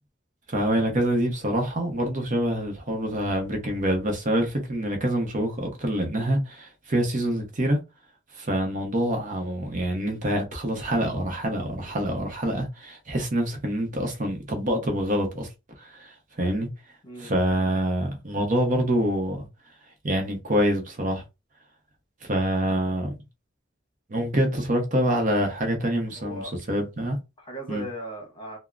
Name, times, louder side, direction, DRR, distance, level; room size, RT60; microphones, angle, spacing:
voice 1, 0.5-7.8 8.4-15.5 15.9-16.1 16.4-16.7 17.2-19.5 20.0-21.2 22.2-23.1 24.1-26.4 26.7-27.2 27.7-27.8, right 1 dB, 40° right, 0.8 m, -26 dB
voice 2, 17.0-17.4 26.1-26.5 27.4-28.6, right 1 dB, 25° left, 1.1 m, -37 dB
3.5 x 2.0 x 2.4 m
head